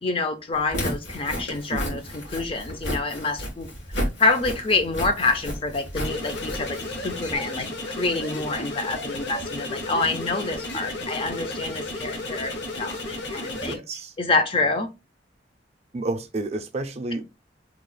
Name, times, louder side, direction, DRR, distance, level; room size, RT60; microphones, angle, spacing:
voice 1, 0.0-3.7 4.2-6.8 7.0-13.8 14.2-14.9, left 3 dB, 30° left, 0.4 m, -27 dB
Walk footsteps, 0.6-7.4, equal, 90° left, 1.5 m, -33 dB
voice 2, 1.7-2.0 13.5-14.1 15.9-17.2, right 2 dB, 35° right, 0.4 m, -30 dB
sound 1, 5.9-13.7, left 2 dB, 70° left, 0.8 m, -33 dB
2.9 x 2.3 x 3.9 m
head